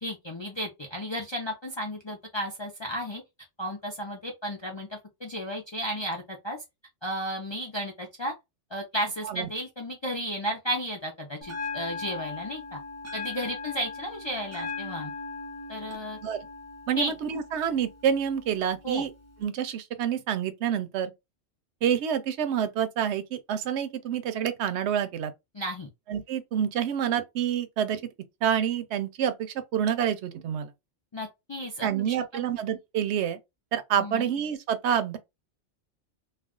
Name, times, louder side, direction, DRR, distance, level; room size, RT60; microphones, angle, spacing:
voice 1, 0.0-3.2 3.6-6.6 7.0-8.3 8.7-12.8 13.1-15.1 15.7-16.2 16.9-17.1 18.8-19.1 25.5-25.9 31.1-31.9 32.2-32.5 34.0-34.3, equal, 35° left, 0.5 m, -33 dB
Bell, 11.4-19.4, left 4 dB, 20° right, 0.5 m, -39 dB
voice 2, 16.9-19.1 19.4-21.1 21.8-25.3 26.1-28.0 28.4-30.7 31.8-33.4 33.7-35.2, right 9 dB, 75° right, 0.8 m, -28 dB
2.4 x 2.3 x 3.5 m
omnidirectional pair, 1.2 m